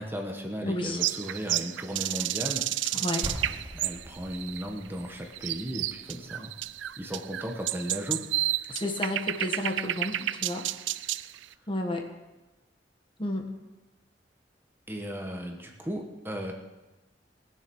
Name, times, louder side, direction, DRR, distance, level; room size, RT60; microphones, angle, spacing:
voice 1, 0.0-3.0 3.7-6.5 7.0-8.2 14.9-16.5, equal, 10° right, 2 dB, 1.2 m, -36 dB
voice 2, 0.6-1.0 2.9-3.3 8.7-10.6 11.7-12.1 13.2-13.5, left 1 dB, 30° left, 3 dB, 1.5 m, -31 dB
sound 1, 1.0-11.4, right 14 dB, 85° right, 0.4 m, -31 dB
sound 2, 3.2-9.0, equal, 30° right, 2.4 m, -43 dB
19.0 x 7.1 x 6.3 m, 1.1 s
head